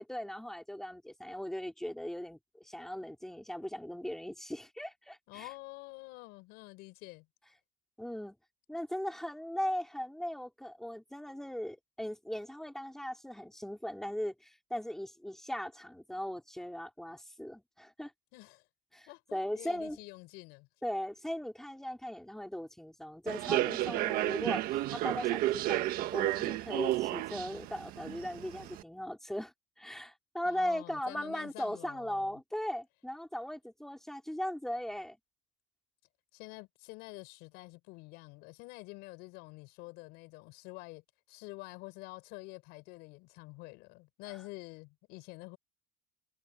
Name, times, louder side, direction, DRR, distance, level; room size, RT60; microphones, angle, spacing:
voice 1, 0.0-5.5 8.0-8.4 8.7-18.1 18.9-20.0 20.8-25.9 26.1-35.2, equal, ahead, 3.7 m, -38 dB
voice 2, 5.3-7.3 18.3-18.6 19.1-20.7 30.5-32.4 36.3-41.0 41.3-45.6, left 24 dB, 80° left, 7.3 m, -48 dB
Human voice / Subway metro underground, 23.3-28.8, right 15 dB, 60° right, 1.6 m, -32 dB
cardioid pair, 130°, 16 cm